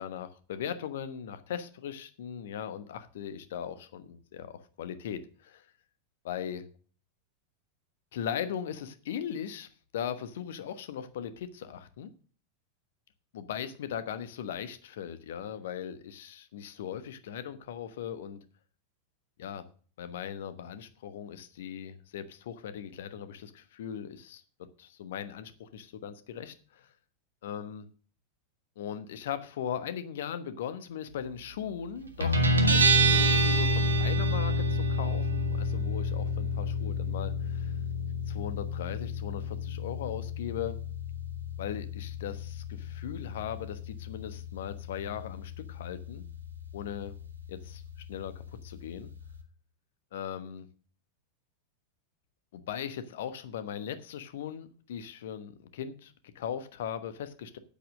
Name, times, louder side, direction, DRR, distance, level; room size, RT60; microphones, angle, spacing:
voice 1, 0.0-4.5 4.8-5.7 6.2-6.7 8.1-9.7 9.9-12.1 13.3-18.4 19.4-19.7 20.0-24.4 24.8-26.9 27.4-27.9 28.8-37.8 38.3-40.8 41.6-46.2 46.7-47.1 47.5-47.8 48.1-49.1 50.1-50.7 52.5-57.6, left 8 dB, 55° left, 12 dB, 1.2 m, -39 dB
Guitar, 32.2-49.4, equal, 75° right, 1.6 m, -29 dB
9.0 x 8.4 x 6.3 m, 0.41 s
figure-of-eight pair, 90°, 0 cm